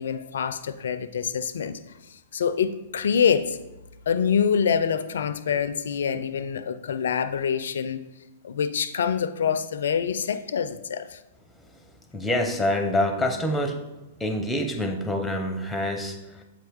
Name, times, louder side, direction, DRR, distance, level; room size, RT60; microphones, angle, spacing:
voice 1, 0.0-1.8 2.1-3.6 4.1-8.0 8.4-11.2, left 7 dB, 75° left, 12 dB, 0.4 m, -25 dB
voice 2, 12.1-13.8 14.2-16.4, left 1 dB, 10° left, 6 dB, 0.8 m, -26 dB
7.6 x 4.3 x 3.6 m, 0.98 s
hypercardioid pair, 120°, 0 cm